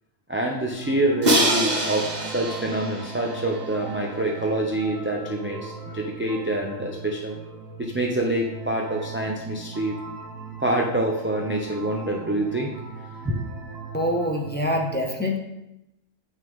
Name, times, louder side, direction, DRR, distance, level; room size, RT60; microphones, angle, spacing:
voice 1, 0.3-7.4 7.8-10.0 10.6-12.7 13.2-13.4, right 1 dB, 15° right, 0 dB, 0.5 m, -26 dB
sound 1, 0.7-14.8, right 5 dB, 85° right, 1.6 m, -38 dB
Crash cymbal, 1.2-4.2, right 1 dB, 35° right, 1.2 m, -25 dB
voice 2, 13.9-15.4, left 1 dB, 10° left, 0 dB, 0.8 m, -25 dB
8.5 x 6.3 x 3.6 m, 0.89 s
omnidirectional pair, 1.4 m